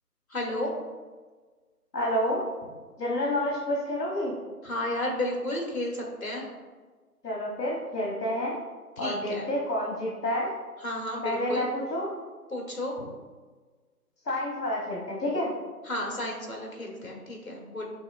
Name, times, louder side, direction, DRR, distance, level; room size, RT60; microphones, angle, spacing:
voice 1, 0.3-0.7 4.6-6.5 9.0-9.4 10.8-11.7 12.5-13.1 15.8-17.8, left 1 dB, 60° left, -1 dB, 1.2 m, -32 dB
voice 2, 1.9-2.4 3.0-4.3 7.2-8.6 9.0-10.5 11.2-12.1 14.3-15.5, left 1 dB, 80° left, -3 dB, 1.2 m, -29 dB
5.8 x 3.1 x 2.5 m, 1.4 s
figure-of-eight pair, 180°, 47 cm